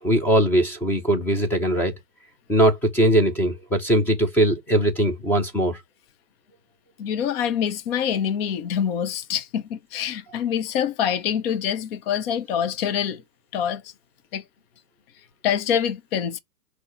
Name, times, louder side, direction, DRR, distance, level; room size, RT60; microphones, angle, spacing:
voice 1, 0.0-1.9 2.5-5.8, right 1 dB, 5° left, 0.7 m, -20 dB
voice 2, 7.0-13.2 13.5-13.9 14.3-14.4 15.4-16.4, left 8 dB, 35° left, 0.9 m, -25 dB
6.1 x 2.9 x 5.6 m
hypercardioid pair, 145°, 49 cm